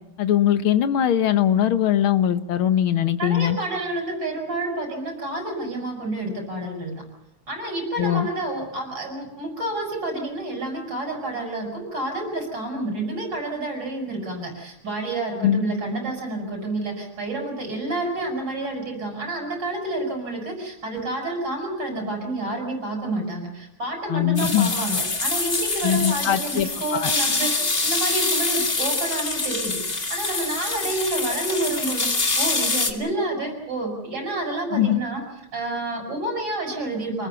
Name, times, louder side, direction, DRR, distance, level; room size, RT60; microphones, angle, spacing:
voice 1, 0.2-3.6 8.0-8.3 15.4-15.6 24.1-24.7 25.8-27.1 34.7-35.0, left 10 dB, 70° left, 11 dB, 1.9 m, -21 dB
voice 2, 3.2-6.9 7.5-35.2 35.5-37.3, right 2 dB, 50° right, 1 dB, 7.4 m, -29 dB
sound 1, 24.4-32.9, left 3 dB, 25° left, 2.0 m, -25 dB
27.5 x 20.0 x 7.0 m, 0.88 s
omnidirectional pair, 2.4 m